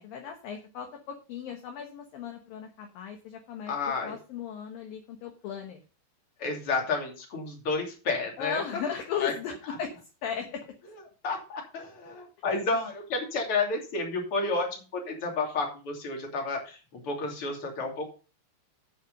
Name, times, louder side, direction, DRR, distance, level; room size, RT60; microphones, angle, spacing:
voice 1, 0.0-3.7 4.0-5.8 8.4-9.9 10.2-10.6, left 8 dB, 65° left, 4 dB, 2.6 m, -36 dB
voice 2, 3.7-4.1 6.4-8.6 9.1-9.3 11.2-18.0, left 3 dB, 35° left, 1 dB, 3.2 m, -31 dB
9.2 x 7.6 x 5.3 m, 0.34 s
omnidirectional pair, 4.9 m